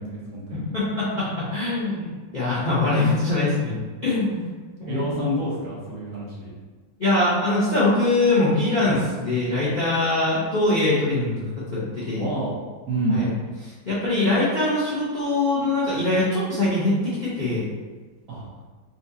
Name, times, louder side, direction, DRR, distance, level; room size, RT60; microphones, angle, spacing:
voice 1, 0.0-0.6 4.9-6.5 8.9-9.0 12.1-13.2 18.3-18.4, right 1 dB, 65° right, -5 dB, 1.4 m, -28 dB
voice 2, 0.5-3.7 4.0-4.5 4.8-5.4 7.0-12.3 13.1-13.3 13.6-17.7, left 2 dB, 70° left, -10 dB, 0.4 m, -23 dB
4.3 x 2.3 x 2.7 m, 1.3 s
omnidirectional pair, 2.1 m